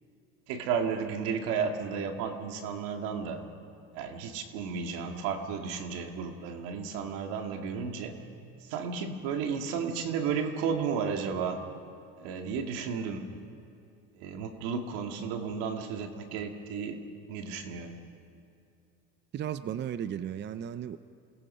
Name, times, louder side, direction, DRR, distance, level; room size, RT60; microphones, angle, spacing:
voice 1, 0.5-3.4 3.9-8.1 8.6-11.6 12.2-13.2 14.1-17.0 17.3-18.0, right 6 dB, 80° right, 4 dB, 2.3 m, -33 dB
voice 2, 19.3-21.0, right 9 dB, 30° right, 12 dB, 0.6 m, -35 dB
27.5 x 18.5 x 5.7 m, 2.5 s
cardioid pair, 125°, 34 cm